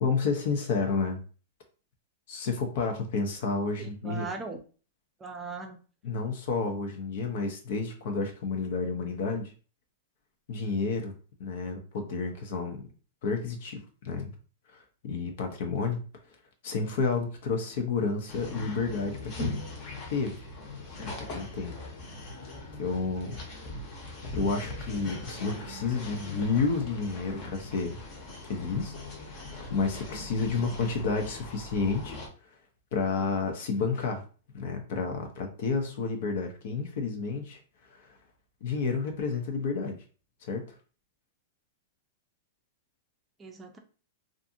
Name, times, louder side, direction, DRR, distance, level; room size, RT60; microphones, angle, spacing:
voice 1, 0.0-1.2 2.3-4.3 6.0-9.5 10.5-11.1 11.4-12.9 13.2-14.3 14.7-16.0 16.6-19.6 20.1-20.3 21.0-21.7 22.1-22.3 22.8-23.4 24.3-28.0 28.4-28.9 29.7-32.1 32.9-34.2 34.5-37.6 37.9-38.2 38.6-40.0 40.4-40.6, left 4 dB, 60° left, 0.6 m, -30 dB
voice 2, 3.8-4.6 5.2-5.8 30.6-30.7 43.4-43.8, right 4 dB, 15° right, 0.5 m, -39 dB
sound 1, 18.3-32.3, left 2 dB, 35° left, 0.9 m, -40 dB
2.6 x 2.5 x 2.6 m
hypercardioid pair, 140°, 0 cm